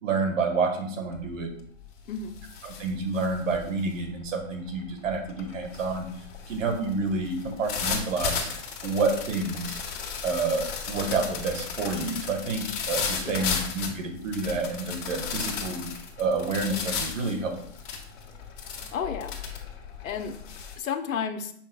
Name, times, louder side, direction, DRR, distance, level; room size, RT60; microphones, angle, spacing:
voice 1, 0.0-1.5 2.6-6.1 6.5-8.5 8.8-9.8 10.2-15.9 16.2-17.6, right 3 dB, 70° right, 4 dB, 1.8 m, -29 dB
sound 1, 1.1-1.5 1.8-20.8, left 6 dB, 40° left, 1.6 m, -35 dB
voice 2, 13.2-13.6 18.9-19.4 20.0-20.4 20.8-21.5, left 7 dB, 80° left, 6 dB, 0.9 m, -32 dB
7.6 x 5.4 x 2.4 m, 0.65 s
hypercardioid pair, 135°, 40 cm